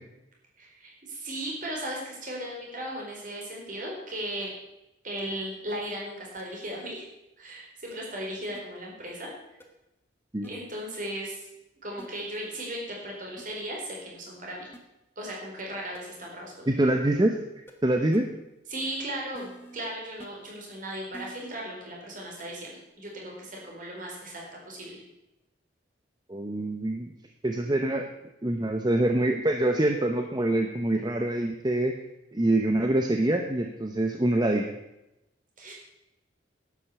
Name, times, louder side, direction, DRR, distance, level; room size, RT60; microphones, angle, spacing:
voice 1, 0.6-4.5 5.0-7.1 7.4-9.3 10.4-11.5 11.8-14.7 15.2-16.8 18.7-25.0 35.6-35.7, right 1 dB, 45° right, -1 dB, 4.4 m, -37 dB
sound 1, 6.4-6.5 7.9-8.0 8.5-8.6 9.6-9.7 10.4-10.5 12.0-12.1 13.4-13.5 14.7-14.8 15.6-15.7 15.9-16.0 17.7-17.8 18.1-18.2 19.3-19.8 20.2-20.3 21.1-21.5 22.4-22.5, right 1 dB, 10° left, 1.5 m, -45 dB
voice 2, 16.7-17.4 17.8-18.3 26.3-27.1 27.4-28.0 28.4-31.9 32.3-34.7, right 1 dB, 20° right, 4 dB, 0.8 m, -25 dB
11.5 x 9.1 x 6.8 m, 0.91 s
head